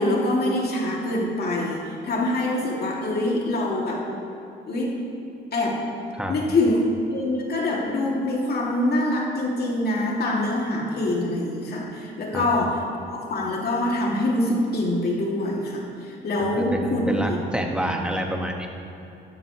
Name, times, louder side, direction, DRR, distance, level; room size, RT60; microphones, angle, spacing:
voice 1, 0.0-4.1 4.7-5.0 5.5-5.9 6.3-6.8 7.1-12.8 13.1-17.4, left 1 dB, 55° left, -2 dB, 2.8 m, -24 dB
voice 2, 16.5-18.7, equal, 5° right, 2 dB, 1.5 m, -27 dB
13.5 x 12.5 x 3.3 m, 2.9 s
cardioid pair, 90°, 20 cm